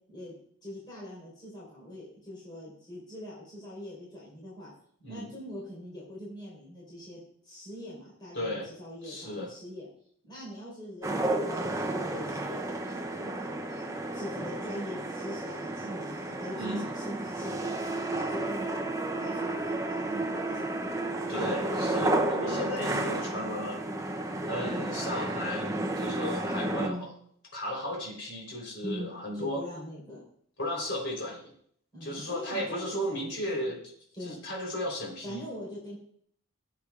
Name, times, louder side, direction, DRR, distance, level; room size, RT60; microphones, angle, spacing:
voice 1, 0.6-4.7 5.1-9.9 10.2-13.9 14.1-18.8 19.1-21.7 22.5-23.0 24.6-24.9 26.8-27.0 28.8-30.2 31.9-33.7 34.1-34.4 35.2-36.0, equal, 20° left, -7 dB, 4.0 m, -42 dB
voice 2, 8.3-8.7 9.0-9.5 16.5-16.9 21.3-23.8 24.4-27.1 27.5-29.6 30.6-31.5 32.0-33.8 34.2-35.4, left 1 dB, 55° left, -2 dB, 3.8 m, -35 dB
sound 1, 11.0-26.9, right 2 dB, 15° right, 0.6 m, -32 dB
16.0 x 8.2 x 2.4 m, 0.63 s
head